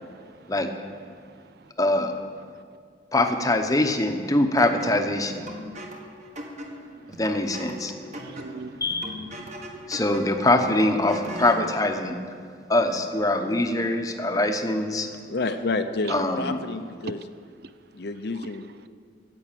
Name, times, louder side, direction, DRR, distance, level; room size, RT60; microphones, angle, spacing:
voice 1, 0.0-0.5 1.2-1.7 8.1-9.9, right 3 dB, 60° right, 12 dB, 0.5 m, -45 dB
voice 2, 1.8-2.1 3.1-5.5 7.2-7.9 8.8-9.2 9.9-12.2 12.7-15.1 16.1-16.6, left 1 dB, 20° left, 5 dB, 0.9 m, -23 dB
sound 1, 4.6-11.7, equal, 40° right, 1.6 m, -39 dB
voice 3, 15.3-17.2 17.9-18.9, left 3 dB, 65° left, 9 dB, 0.7 m, -29 dB
10.5 x 7.9 x 8.8 m, 2.1 s
head